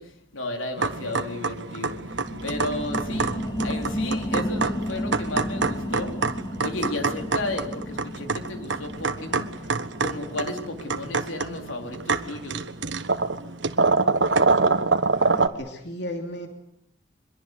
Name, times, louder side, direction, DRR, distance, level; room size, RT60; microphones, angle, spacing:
voice 1, 0.0-6.1 6.6-12.7, left 2 dB, 90° left, 4 dB, 4.0 m, -34 dB
sound 1, 0.8-15.5, right 4 dB, 70° right, 1.4 m, -26 dB
sound 2, 1.8-13.0 13.4-13.5, equal, 20° left, 2.6 m, -34 dB
voice 2, 15.1-16.5, equal, 60° left, 4 dB, 3.0 m, -35 dB
24.5 x 22.5 x 8.2 m, 0.74 s
head